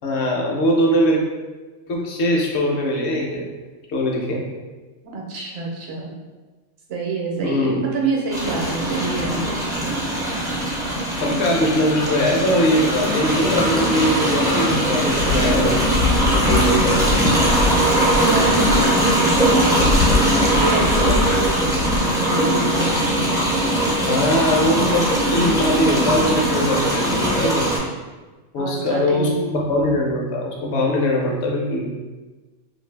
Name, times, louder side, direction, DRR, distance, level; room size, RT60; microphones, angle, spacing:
voice 1, 0.0-1.2 1.9-3.5 3.9-4.5 7.3-7.8 11.2-15.8 16.3-17.0 24.1-27.7 28.5-31.9, left 1 dB, 65° left, -1 dB, 0.8 m, -21 dB
voice 2, 5.1-6.1 6.9-9.9 18.1-19.9 20.5-23.2 28.6-29.4, right 2 dB, 60° right, -2 dB, 0.9 m, -27 dB
sound 1, 8.3-27.8, right 1 dB, 5° right, 0.3 m, -20 dB
sound 2, 15.0-22.0, left 3 dB, 85° left, 1.0 m, -24 dB
2.6 x 2.5 x 3.2 m, 1.2 s
omnidirectional pair, 1.3 m